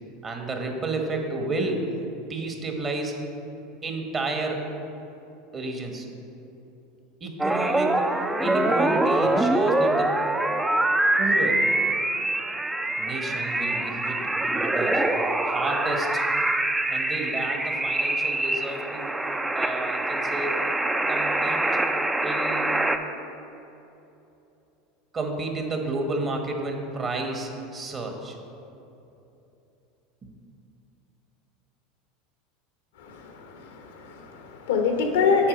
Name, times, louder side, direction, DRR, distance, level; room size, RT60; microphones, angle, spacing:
voice 1, 0.2-1.8 2.1-3.2 3.8-4.6 5.5-6.1 7.2-8.1 8.4-10.2 11.2-11.6 13.0-15.0 15.4-16.2 16.9-19.2 19.5-20.6 21.1-21.6 22.2-22.7 25.1-28.4 30.2-30.3, right 2 dB, 30° right, 3 dB, 1.1 m, -31 dB
sound 1, 7.4-23.0, right 2 dB, 10° right, 0.4 m, -24 dB
voice 2, 33.0-35.5, left 5 dB, 80° left, 4 dB, 0.9 m, -25 dB
7.3 x 4.5 x 5.2 m, 2.9 s
hypercardioid pair, 90°, 0 cm